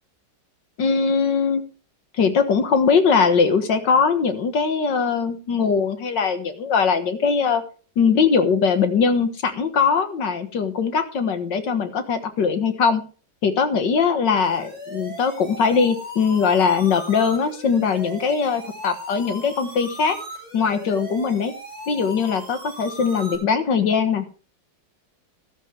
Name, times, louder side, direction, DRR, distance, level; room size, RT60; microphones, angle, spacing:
voice 1, 0.8-1.6 2.2-7.6 8.0-13.0 13.4-20.2 20.5-21.5 21.9-24.3, left 5 dB, 75° left, 9 dB, 2.1 m, -21 dB
sound 1, 14.4-23.4, equal, 15° left, 6.6 m, -38 dB
13.5 x 12.5 x 3.3 m, 0.38 s
omnidirectional pair, 2.0 m